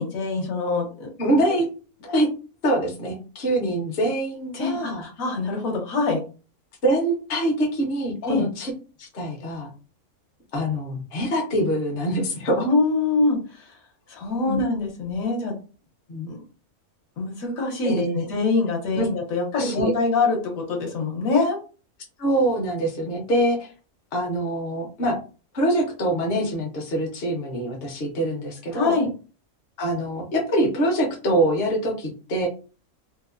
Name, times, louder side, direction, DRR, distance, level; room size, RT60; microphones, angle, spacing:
voice 1, 0.0-1.1 4.5-6.2 8.2-8.5 12.6-13.4 14.1-15.5 16.3-16.4 17.2-20.4 20.7-21.6 28.7-29.1, left 3 dB, 70° left, 0 dB, 1.2 m, -24 dB
voice 2, 1.2-1.7 2.0-2.3 2.6-5.1 6.8-8.7 9.0-9.7 10.5-12.7 14.4-14.6 16.1-16.3 17.8-18.2 18.9-19.1 19.5-19.9 22.2-23.7 24.1-25.2 25.5-28.9 29.8-32.5, right 1 dB, 50° left, -1 dB, 0.9 m, -24 dB
2.9 x 2.0 x 2.4 m, 0.35 s
omnidirectional pair, 1.5 m